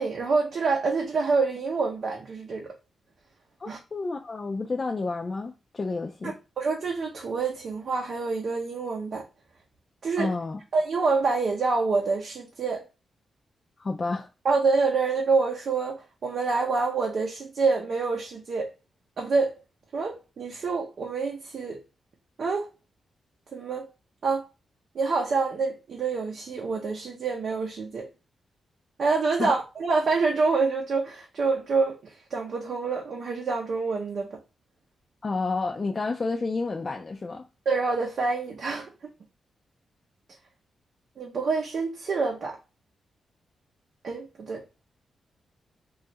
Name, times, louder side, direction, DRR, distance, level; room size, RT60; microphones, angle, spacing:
voice 1, 0.0-2.8 3.7-3.8 6.2-9.2 10.0-10.3 10.7-12.9 14.4-18.7 19.2-19.6 19.9-21.8 22.4-22.7 23.5-23.9 24.2-24.5 24.9-28.1 29.0-34.4 37.7-38.9 41.2-42.6 44.0-44.6, right 4 dB, 60° right, 0.6 m, -27 dB
voice 2, 3.6-6.4 10.2-10.6 13.8-14.3 29.4-29.6 35.2-37.4, left 3 dB, 35° left, 0.4 m, -30 dB
3.1 x 2.4 x 2.7 m
cardioid pair, 110°, 0 cm